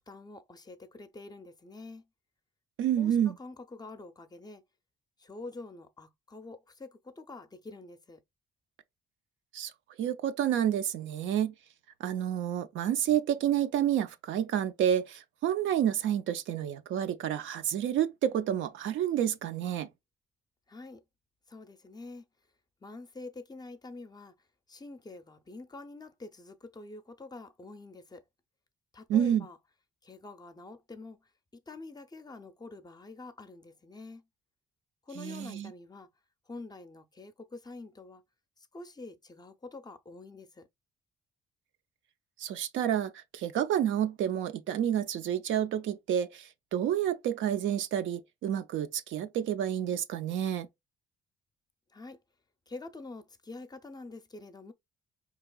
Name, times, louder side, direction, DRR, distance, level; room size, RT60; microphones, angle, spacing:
voice 1, 0.0-2.0 3.0-4.6 5.2-8.2 20.7-21.0 21.5-22.2 22.8-24.3 24.7-28.2 28.9-29.6 30.0-31.2 31.7-34.2 35.1-36.1 36.5-38.2 38.7-40.7 51.9-52.2 52.7-54.7, left 3 dB, 20° left, 0.5 m, -46 dB
voice 2, 2.8-3.3 9.5-9.7 10.0-11.5 12.0-19.9 29.1-29.4 35.2-35.7 42.4-50.7, right 10 dB, 75° right, 0.5 m, -29 dB
4.5 x 2.9 x 2.2 m
cardioid pair, 90°, 20 cm